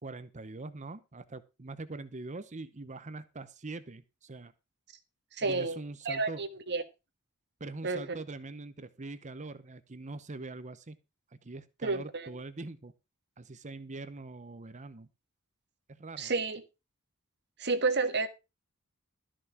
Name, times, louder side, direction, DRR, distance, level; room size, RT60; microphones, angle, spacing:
voice 1, 0.0-4.5 5.4-6.4 7.6-11.0 11.3-12.9 13.4-15.1 15.9-16.3, right 3 dB, 35° right, 0.8 m, -43 dB
voice 2, 5.3-5.8 6.0-6.8 7.8-8.0 11.8-12.3 16.2-16.6 17.6-18.3, right 3 dB, 50° right, 1.7 m, -30 dB
13.0 x 6.2 x 5.9 m
head